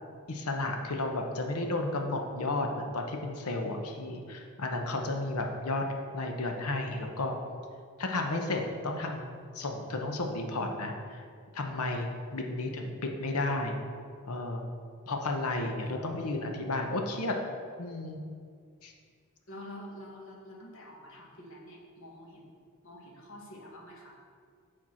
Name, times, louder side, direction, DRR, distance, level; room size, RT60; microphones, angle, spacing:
voice 1, 0.3-5.9 6.1-7.4 8.0-11.2 11.5-13.8 14.2-14.6 15.1-17.4 17.8-18.2 18.8-18.9, left 2 dB, 85° left, 3 dB, 0.8 m, -33 dB
voice 2, 15.8-16.1 19.5-22.4 22.8-24.2, left 1 dB, 65° left, -2 dB, 1.4 m, -48 dB
8.5 x 4.5 x 4.4 m, 2.1 s
head